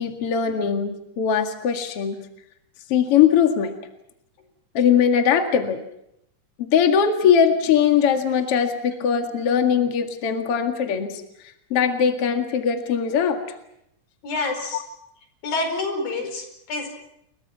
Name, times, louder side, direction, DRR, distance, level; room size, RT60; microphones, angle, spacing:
voice 1, 0.0-2.2 2.9-3.7 4.7-5.8 6.7-11.1 11.7-13.4, left 7 dB, 45° left, 5 dB, 2.7 m, -20 dB
voice 2, 14.2-14.8 15.4-16.9, left 3 dB, 90° left, 6 dB, 6.7 m, -27 dB
29.5 x 23.5 x 5.9 m, 0.79 s
omnidirectional pair, 4.0 m